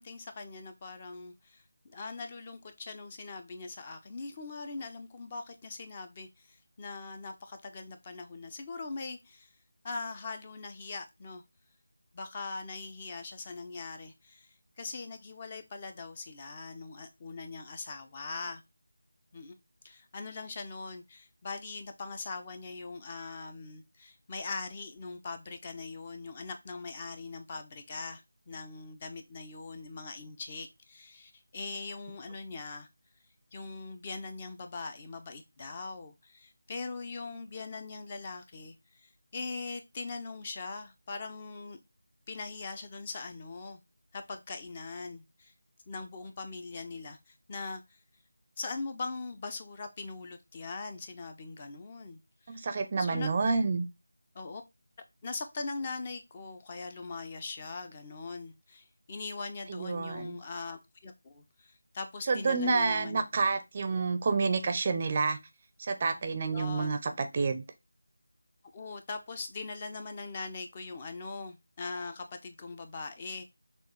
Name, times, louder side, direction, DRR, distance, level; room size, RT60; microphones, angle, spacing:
voice 1, 0.0-9.5 9.8-11.4 12.1-14.5 14.8-18.6 19.3-19.6 19.8-32.9 33.5-41.8 42.3-43.8 44.1-45.5 45.9-48.0 48.6-52.2 52.5-52.7 53.0-53.4 54.3-54.6 55.2-63.2 66.5-66.9 68.7-73.4, left 3 dB, 25° left, 0.5 m, -41 dB
voice 2, 52.5-53.8 59.7-60.4 62.3-65.4 65.8-67.6, right 4 dB, 30° right, 0.5 m, -29 dB
6.2 x 2.4 x 3.0 m
figure-of-eight pair, 165°, 0 cm